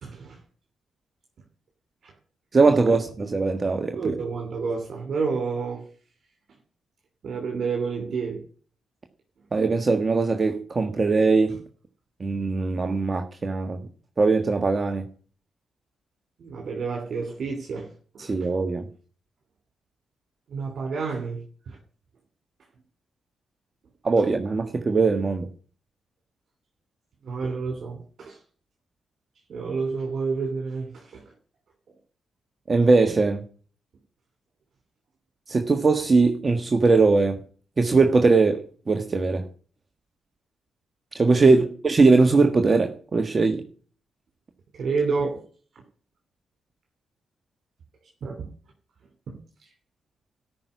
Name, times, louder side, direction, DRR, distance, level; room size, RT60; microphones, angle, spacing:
voice 1, 0.0-0.4 2.0-2.1 2.8-3.0 3.9-5.8 7.2-8.4 16.4-17.9 18.1-18.3 20.5-21.8 27.2-28.4 29.5-31.2 41.4-41.7 44.7-45.4 48.2-48.5, right 4 dB, 60° right, 3.0 m, -29 dB
voice 2, 2.5-4.1 9.5-11.6 12.2-13.8 14.2-15.0 18.2-18.9 24.0-25.5 32.7-33.4 35.5-37.4 37.8-39.4 41.1-43.6, right 3 dB, 40° right, 1.6 m, -20 dB
13.5 x 6.1 x 9.5 m
hypercardioid pair, 45°, 0 cm